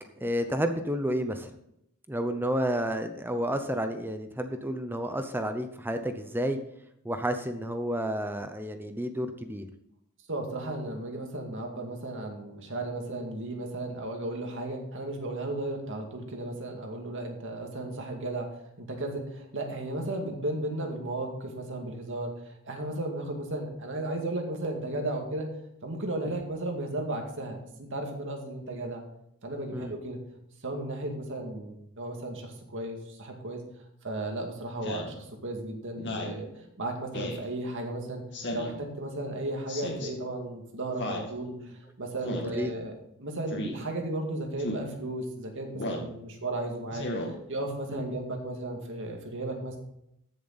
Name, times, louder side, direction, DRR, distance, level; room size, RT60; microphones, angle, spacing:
voice 1, 0.2-1.5 2.1-6.6 7.0-9.7 29.7-29.9 42.3-42.7 47.9-48.0, equal, 10° right, 7 dB, 0.6 m, -31 dB
voice 2, 10.3-18.5 18.8-25.5 25.8-29.0 29.4-30.2 30.6-33.6 34.0-36.5 36.8-38.2 38.5-42.9 43.2-47.1 47.5-49.8, right 2 dB, 60° right, 2 dB, 2.2 m, -34 dB
Speech synthesizer, 34.8-35.1 36.0-36.4 37.1-37.4 38.3-38.8 39.7-40.1 41.0-41.3 42.2-42.6 43.5-43.7 44.6-44.8 45.7-46.1 46.9-47.3, left 1 dB, 55° left, 2.3 m, -34 dB
14.5 x 7.1 x 4.1 m, 0.77 s
head